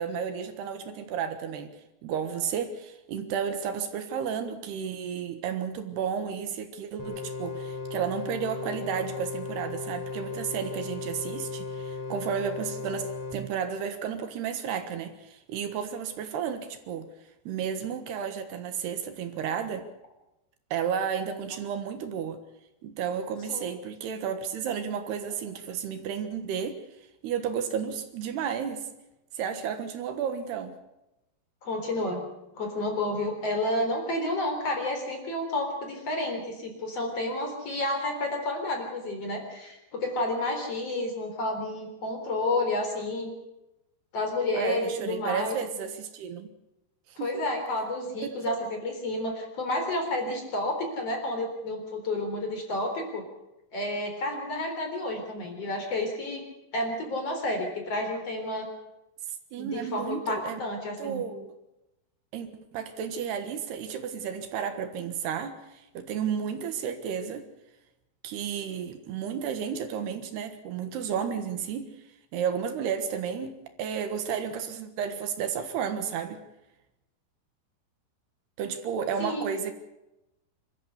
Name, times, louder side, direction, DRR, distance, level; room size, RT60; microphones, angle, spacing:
voice 1, 0.0-1.7 2.0-17.1 17.5-19.9 20.7-22.4 22.8-26.8 27.2-28.9 29.4-30.8 44.5-46.5 47.1-47.3 48.2-48.6 59.5-60.6 61.0-61.5 62.3-67.5 68.2-71.9 72.3-76.4 78.6-79.7, right 7 dB, 75° right, 8 dB, 3.4 m, -32 dB
sound 1, 7.0-13.3, left 4 dB, 5° left, 4.0 m, -36 dB
voice 2, 31.6-32.2 32.5-43.3 44.1-45.6 47.2-53.2 53.7-56.4 56.7-58.7 59.6-61.2 79.2-79.4, left 1 dB, 35° left, 3 dB, 4.6 m, -30 dB
26.0 x 14.0 x 8.1 m, 0.92 s
omnidirectional pair, 4.9 m